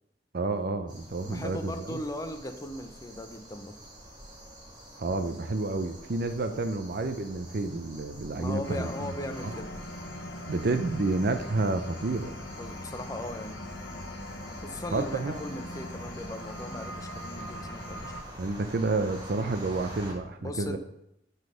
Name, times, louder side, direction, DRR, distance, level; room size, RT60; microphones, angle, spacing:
voice 1, 0.3-2.0 5.0-9.1 9.4-9.6 10.5-12.3 14.9-15.4 18.4-20.8, right 3 dB, 60° right, 9 dB, 0.6 m, -30 dB
sound 1, 0.9-20.1, equal, 25° right, 1.7 m, -47 dB
voice 2, 1.2-3.8 6.4-6.7 8.4-9.7 12.6-13.7 14.4-18.4 20.4-20.8, left 1 dB, 20° left, 6 dB, 0.7 m, -38 dB
sound 2, 8.6-18.2, left 1 dB, 85° left, 1.1 m, -40 dB
6.1 x 5.5 x 6.3 m, 0.80 s
head